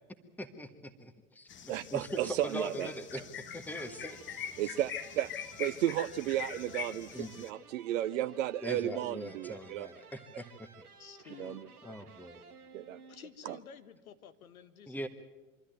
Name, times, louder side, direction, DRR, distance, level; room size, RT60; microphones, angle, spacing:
voice 1, 0.4-3.2 3.5-4.4 7.1-7.3 8.6-10.7 11.8-12.4 14.9-15.1, equal, 5° left, 8 dB, 1.5 m, -41 dB
sound 1, 1.5-7.5, left 8 dB, 25° left, 1.2 m, -44 dB
voice 2, 1.7-2.9 4.6-5.3 5.6-9.9 11.4-11.7 12.7-13.0 13.5-13.6, right 12 dB, 60° right, 13 dB, 0.7 m, -33 dB
voice 3, 2.7-3.3 11.0-11.6 13.1-15.1, left 8 dB, 70° left, 10 dB, 1.6 m, -51 dB
sound 2, 3.6-13.6, right 5 dB, 85° right, 1.5 m, -56 dB
25.0 x 13.5 x 9.2 m, 1.2 s
figure-of-eight pair, 90°, 44 cm